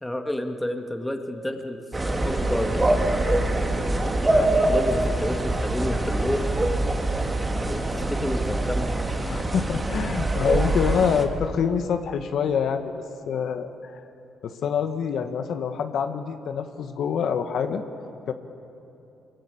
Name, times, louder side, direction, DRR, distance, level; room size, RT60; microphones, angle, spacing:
voice 1, 0.0-1.8 2.0-3.0 4.1-6.5 7.6-8.9, left 1 dB, 10° left, 4 dB, 2.1 m, -30 dB
sound 1, 1.9-11.3, right 2 dB, 20° right, 2.4 m, -24 dB
voice 2, 9.3-12.9 13.3-14.0 14.4-17.8 18.3-18.4, left 7 dB, 70° left, 7 dB, 1.3 m, -26 dB
24.5 x 22.5 x 8.6 m, 2.8 s
cardioid pair, 90°, 0 cm